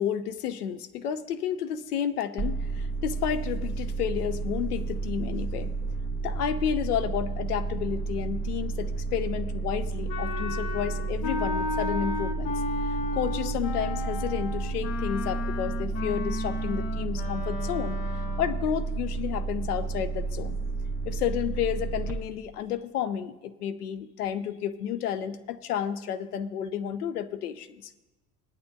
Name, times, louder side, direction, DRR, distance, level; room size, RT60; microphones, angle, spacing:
voice 1, 0.0-5.7 6.2-12.5 13.1-18.0 18.4-20.6 21.1-27.9, left 9 dB, 80° left, 12 dB, 0.6 m, -31 dB
sound 1, 2.4-22.1, right 3 dB, 5° left, 1.3 m, -31 dB
Wind instrument woodwind instrument, 10.1-18.7, left 4 dB, 50° left, 0.9 m, -34 dB
23.0 x 8.8 x 2.7 m, 1.1 s
figure-of-eight pair, 65°, 46 cm